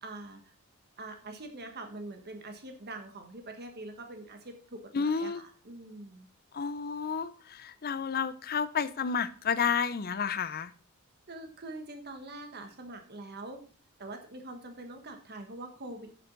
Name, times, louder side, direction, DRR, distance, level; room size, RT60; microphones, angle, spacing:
voice 1, 0.0-0.5 1.0-6.3 11.3-13.6 14.0-16.1, right 2 dB, 50° right, 1.3 m, -44 dB
voice 2, 4.9-5.4 6.5-10.7, left 6 dB, 45° left, 0.5 m, -31 dB
10.0 x 7.1 x 3.9 m
head